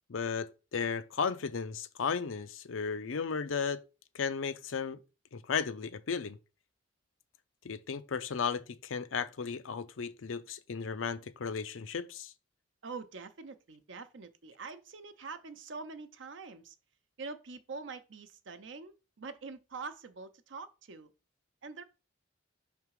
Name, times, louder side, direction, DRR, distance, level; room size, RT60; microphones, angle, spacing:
voice 1, 0.1-3.8 4.1-5.0 5.3-6.4 7.6-12.3, left 6 dB, 90° left, 0.6 m, -35 dB
voice 2, 12.8-16.7 17.2-21.1 21.6-21.8, right 4 dB, 65° right, 0.7 m, -45 dB
5.8 x 3.5 x 4.7 m
head